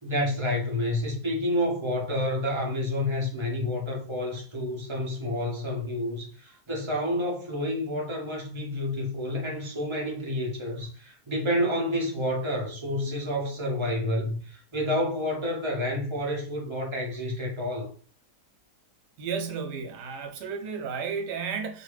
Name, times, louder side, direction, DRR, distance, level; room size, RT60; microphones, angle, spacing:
voice 1, 0.0-17.9, left 1 dB, 30° right, 0.5 m, -29 dB
voice 2, 19.2-21.8, right 6 dB, 80° right, 1.3 m, -33 dB
2.6 x 2.5 x 3.1 m
omnidirectional pair, 1.8 m